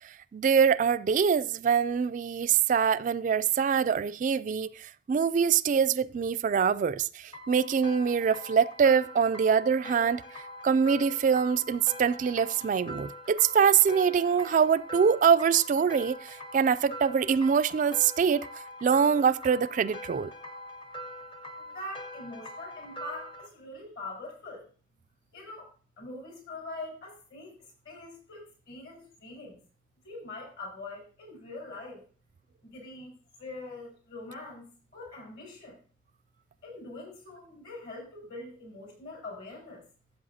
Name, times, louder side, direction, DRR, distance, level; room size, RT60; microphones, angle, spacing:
voice 1, 0.3-4.7 5.1-7.1 7.5-10.2 10.6-16.2 16.5-18.5 18.8-20.3, right 7 dB, 45° right, 0.3 m, -24 dB
sound 1, 7.3-23.5, left 1 dB, 30° left, 0.8 m, -43 dB
voice 2, 21.6-24.7 25.3-25.7 26.0-27.6 27.8-29.6 30.0-32.1 32.6-34.7 34.9-35.8 36.6-39.8, left 2 dB, 65° left, 5.2 m, -43 dB
12.5 x 7.8 x 2.7 m
head